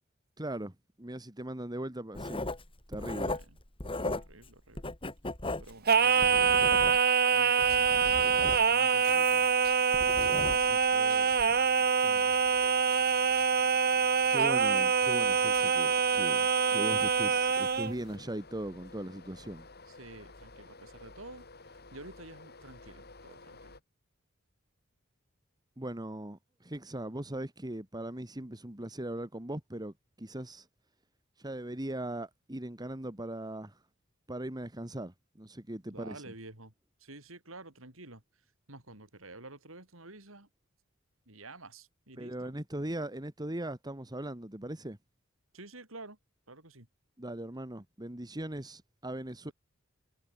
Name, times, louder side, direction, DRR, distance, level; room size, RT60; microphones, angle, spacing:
voice 1, 0.4-2.5 2.9-3.4 14.3-19.7 25.8-30.7 31.4-33.8 34.3-36.2 42.2-45.0 47.2-49.5, right 1 dB, 20° right, 2.0 m, -39 dB
Writing, 2.1-4.5 4.8-7.2 7.6-10.9 11.3-11.6, left 2 dB, 25° left, 3.2 m, -38 dB
voice 2, 3.2-3.6 4.1-4.9 5.6-6.9 7.3-9.5 10.4-11.7 12.0-12.4 19.9-21.5 21.9-23.7 35.9-36.7 37.0-38.2 38.7-40.5 41.3-42.6 45.5-46.2 46.5-46.9 49.4-49.5, right 2 dB, 75° right, 5.8 m, -50 dB
Singing, 5.9-17.9, right 6 dB, 50° right, 1.4 m, -25 dB
sound 1, 11.2-23.8, left 3 dB, 50° left, 8.0 m, -53 dB
head